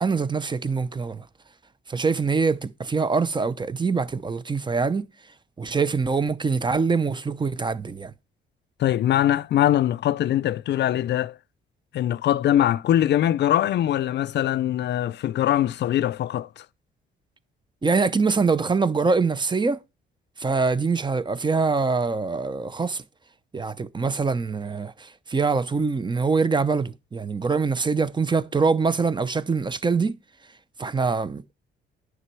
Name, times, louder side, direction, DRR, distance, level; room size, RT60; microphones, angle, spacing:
voice 1, 0.0-1.2 1.9-5.0 5.6-8.1 17.8-19.8 20.4-23.0 23.5-24.9 25.3-30.1 30.8-31.5, right 4 dB, 25° right, 0.7 m, -24 dB
voice 2, 8.8-11.4 11.9-16.7, left 12 dB, 60° left, 0.4 m, -22 dB
9.9 x 6.2 x 4.6 m
cardioid pair, 90°, 20 cm